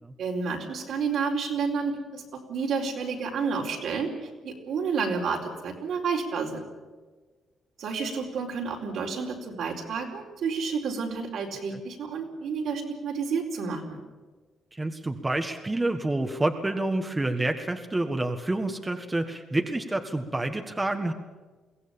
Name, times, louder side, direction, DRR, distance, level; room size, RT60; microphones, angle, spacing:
voice 1, 0.2-6.6 7.8-14.0, right 5 dB, 70° right, 1 dB, 4.4 m, -30 dB
voice 2, 14.7-21.1, right 2 dB, 15° right, 5 dB, 1.6 m, -28 dB
23.0 x 16.5 x 8.9 m, 1.3 s
cardioid pair, 90°, 0 cm